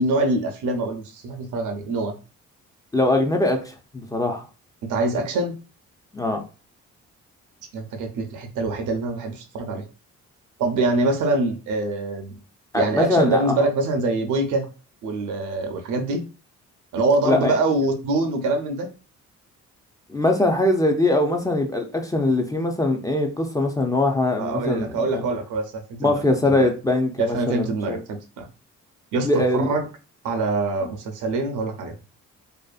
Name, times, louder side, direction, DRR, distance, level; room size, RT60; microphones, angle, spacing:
voice 1, 0.0-2.2 4.8-5.5 7.7-9.9 10.6-12.4 12.7-14.7 15.0-16.2 16.9-18.9 24.4-26.2 26.5-26.7 27.2-28.5 29.1-29.9 30.2-31.9, right 2 dB, 80° right, 5 dB, 0.6 m, -24 dB
voice 2, 2.9-4.5 6.1-6.4 12.7-13.7 17.2-17.6 20.1-25.2 26.0-28.0 29.2-29.7, left 2 dB, 10° left, 3 dB, 0.4 m, -22 dB
2.5 x 2.4 x 2.4 m, 0.33 s
cardioid pair, 90°, 30 cm